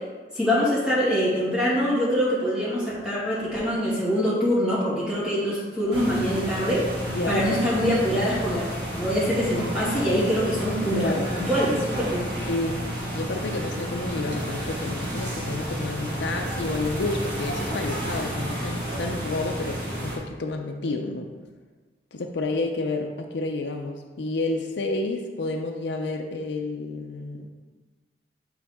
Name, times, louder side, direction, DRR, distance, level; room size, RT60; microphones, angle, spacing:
voice 1, 0.3-6.8 7.3-8.6 8.9-12.2, equal, 5° right, -9 dB, 2.0 m, -24 dB
sound 1, 5.9-20.2, equal, 80° right, 1.6 m, -31 dB
voice 2, 7.1-7.4 10.9-11.3 12.4-12.9 13.1-21.3 22.1-27.5, left 2 dB, 85° left, 2 dB, 0.5 m, -30 dB
8.8 x 3.9 x 3.5 m, 1.4 s
head